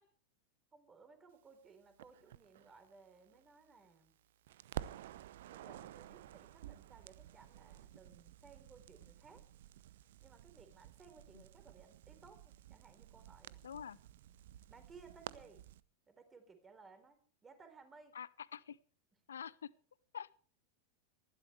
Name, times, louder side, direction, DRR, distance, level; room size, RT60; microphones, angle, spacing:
voice 1, 0.7-4.2 5.5-9.4 10.2-13.6 14.7-15.6 16.1-18.2, right 4 dB, 20° right, 7 dB, 3.9 m, -60 dB
Crackle, 2.0-4.1 4.5-15.8, right 13 dB, 55° right, 0.7 m, -52 dB
voice 2, 13.6-14.0 18.1-18.8 19.3-19.7 20.1-20.4, left 8 dB, 65° left, 21 dB, 0.7 m, -46 dB
19.5 x 15.5 x 3.3 m, 0.43 s
figure-of-eight pair, 90°, 0 cm